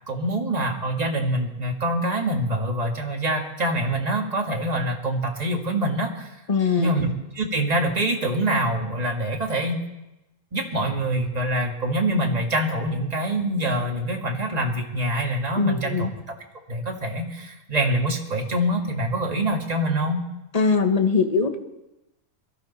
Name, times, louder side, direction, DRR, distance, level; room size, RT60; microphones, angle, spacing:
voice 1, 0.1-6.3 6.8-7.1 7.3-9.8 10.5-16.3 16.7-20.2, right 1 dB, 30° right, 1 dB, 1.8 m, -25 dB
voice 2, 6.5-6.9 15.6-16.1 20.5-21.6, left 5 dB, 30° left, 6 dB, 1.2 m, -21 dB
22.5 x 13.5 x 4.1 m, 0.96 s
omnidirectional pair, 1.5 m